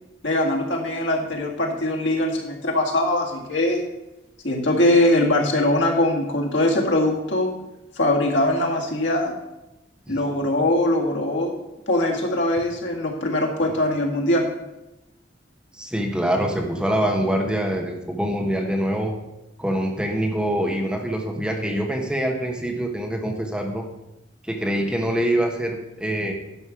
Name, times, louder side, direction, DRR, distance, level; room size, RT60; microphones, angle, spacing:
voice 1, 0.2-3.8 4.4-7.5 8.0-9.4 10.1-11.5 11.9-14.5, left 1 dB, 85° left, 0 dB, 2.0 m, -21 dB
voice 2, 15.7-19.1 19.6-23.8 24.4-26.3, equal, 5° right, 1 dB, 1.1 m, -24 dB
11.0 x 5.2 x 7.2 m, 0.95 s
head